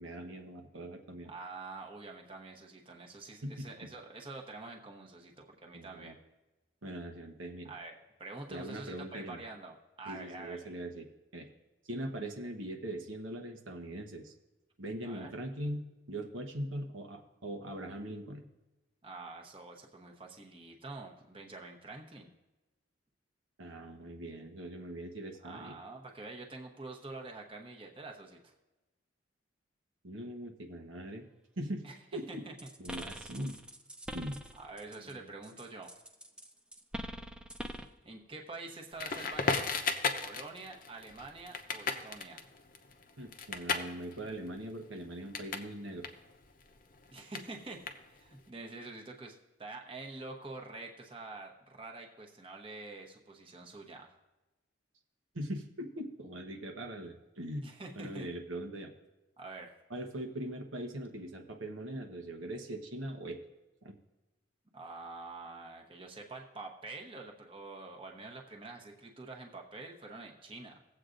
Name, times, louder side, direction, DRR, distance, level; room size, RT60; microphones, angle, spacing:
voice 1, 0.0-1.3 3.4-3.7 5.7-6.1 6.8-7.7 8.5-9.4 10.0-11.0 11.3-11.5 11.8-14.3 14.8-18.4 23.6-25.8 30.0-31.2 31.6-31.8 32.1-32.4 32.8-33.6 34.1-34.4 35.0-35.3 43.2-46.0 55.3-57.7 57.9-58.9 59.9-63.4 63.8-63.9, right 1 dB, 90° right, 4 dB, 1.1 m, -41 dB
voice 2, 1.3-6.1 7.6-10.7 15.0-15.3 19.0-22.3 25.4-28.5 31.8-32.5 33.3-33.5 34.6-35.9 38.0-39.8 40.2-42.4 47.1-54.1 57.6-58.3 59.4-59.7 64.7-70.8, right 3 dB, 25° right, 1 dB, 0.9 m, -46 dB
sound 1, 32.6-35.1 35.4-38.0, equal, 5° right, 0.4 m, -44 dB
Crackle, 39.0-45.7 46.0-48.4, left 4 dB, 45° left, 0.7 m, -36 dB
18.0 x 7.9 x 2.6 m, 1.1 s
head